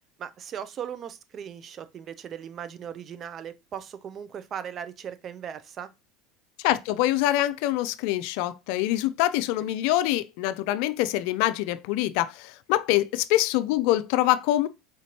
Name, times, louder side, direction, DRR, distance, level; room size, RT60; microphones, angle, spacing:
voice 1, 0.2-5.9, right 8 dB, 45° right, 0.6 m, -38 dB
voice 2, 6.6-14.7, left 15 dB, 70° left, 0.4 m, -25 dB
4.9 x 3.1 x 2.9 m
supercardioid pair, 90°, 0 cm